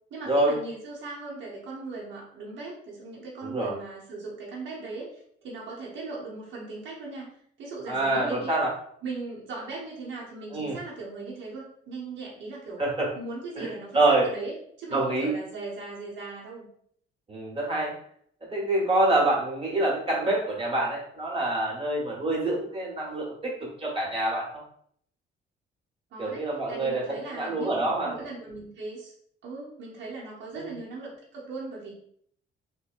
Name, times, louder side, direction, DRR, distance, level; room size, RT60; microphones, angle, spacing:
voice 1, 0.1-8.5 9.0-12.8 13.1-16.7 26.1-29.1 29.4-31.9, right 3 dB, 70° right, -5 dB, 0.9 m, -39 dB
voice 2, 3.4-3.7 7.9-8.7 10.5-10.8 12.8-13.1 13.6-14.3 14.9-15.3 17.3-17.9 18.5-23.5 23.8-24.5 26.2-27.0 27.3-28.1 30.5-30.7, right 2 dB, 30° right, -4 dB, 1.1 m, -26 dB
2.8 x 2.1 x 2.4 m, 0.65 s
cardioid pair, 90°, 20 cm